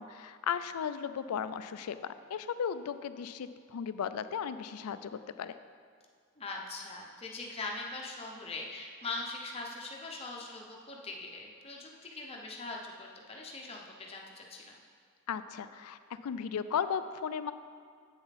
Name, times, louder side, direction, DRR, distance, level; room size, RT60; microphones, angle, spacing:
voice 1, 0.0-2.0 2.3-5.1 5.4-5.5 15.3-17.5, left 7 dB, 90° left, 12 dB, 0.4 m, -35 dB
voice 2, 6.4-14.8, left 3 dB, 25° left, 0 dB, 0.8 m, -41 dB
8.0 x 6.7 x 4.1 m, 2.1 s
head